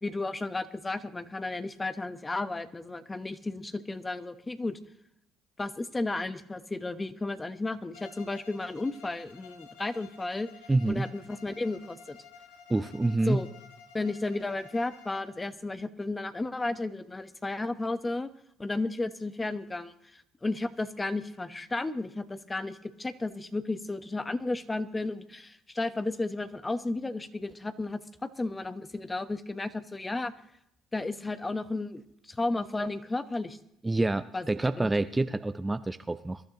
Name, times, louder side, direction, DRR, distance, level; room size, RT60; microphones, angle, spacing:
voice 1, 0.0-4.8 5.6-10.5 10.9-12.2 13.3-13.5 13.9-18.3 18.6-30.3 30.9-33.6 34.3-34.5 34.8-34.9, left 2 dB, 20° left, 11 dB, 1.1 m, -33 dB
Bowed string instrument, 7.9-15.4, left 6 dB, 85° left, 1.5 m, -52 dB
voice 2, 10.7-11.1 12.7-13.4 33.8-36.4, right 2 dB, 15° right, 11 dB, 0.5 m, -27 dB
22.5 x 12.0 x 3.0 m, 0.79 s
hypercardioid pair, 65°, 0 cm